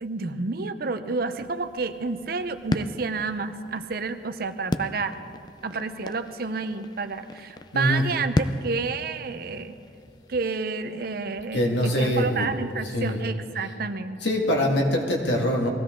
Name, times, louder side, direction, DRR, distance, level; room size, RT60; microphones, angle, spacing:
voice 1, 0.0-5.2 5.6-9.8 10.3-14.2, right 4 dB, 55° right, 10 dB, 0.7 m, -30 dB
sound 1, 1.4-13.1, left 2 dB, 25° left, 0.4 m, -36 dB
voice 2, 7.7-8.0 11.5-12.5 12.9-13.2 14.2-15.7, left 1 dB, 80° left, 1 dB, 2.0 m, -23 dB
20.5 x 15.5 x 3.8 m, 2.4 s
head